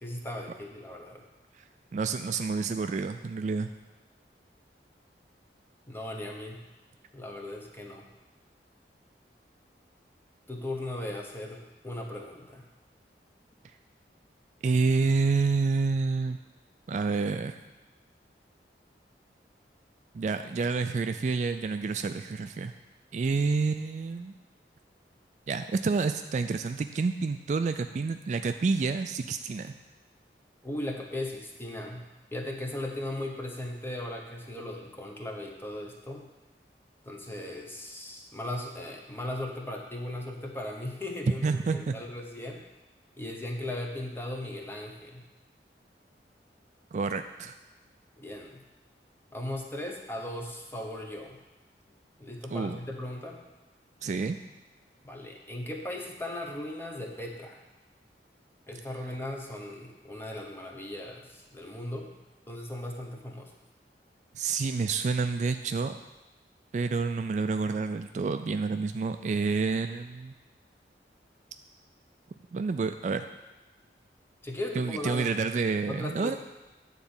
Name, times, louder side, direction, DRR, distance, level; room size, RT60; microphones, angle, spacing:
voice 1, 0.0-1.2 5.9-6.6 7.1-8.1 10.5-12.6 30.6-36.3 37.1-42.6 43.2-45.3 48.2-48.6 49.3-51.4 52.2-53.4 55.0-57.6 58.7-62.1 62.5-63.5 74.4-75.3 75.9-76.4, left 1 dB, 15° left, 1 dB, 0.9 m, -37 dB
voice 2, 1.9-3.7 14.6-16.4 16.9-17.6 20.1-22.7 23.1-24.3 25.5-29.7 41.4-42.0 46.9-47.6 52.5-52.8 54.0-54.4 64.3-66.0 66.7-70.3 72.5-73.3 74.8-76.4, right 4 dB, 40° right, 8 dB, 0.3 m, -28 dB
9.4 x 4.0 x 7.1 m, 1.1 s
head